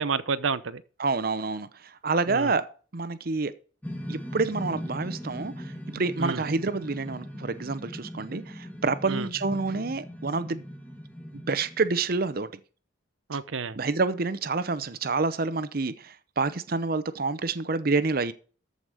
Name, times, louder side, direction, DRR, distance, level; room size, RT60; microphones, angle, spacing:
voice 1, 0.0-0.8 2.3-2.6 6.2-6.4 9.0-9.3 13.3-13.8, right 5 dB, 85° right, 0.7 m, -30 dB
voice 2, 1.0-1.7 2.0-2.6 2.9-3.5 4.1-5.5 5.9-10.6 11.3-12.5 13.8-18.3, right 3 dB, 50° right, 0.8 m, -28 dB
sound 1, 3.8-12.3, equal, 10° left, 1.5 m, -39 dB
14.0 x 5.2 x 6.4 m
head